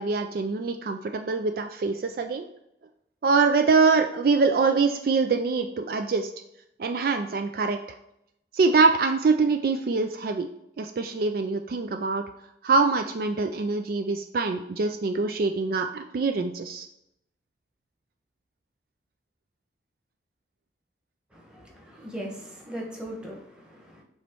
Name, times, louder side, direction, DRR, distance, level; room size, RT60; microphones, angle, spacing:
voice 1, 0.0-2.4 3.2-6.3 6.8-7.8 8.5-10.5 10.8-12.2 12.6-16.9, right 4 dB, 50° right, 6 dB, 0.3 m, -24 dB
voice 2, 21.3-24.0, equal, 5° right, -2 dB, 1.2 m, -39 dB
7.1 x 3.0 x 4.6 m, 0.82 s
head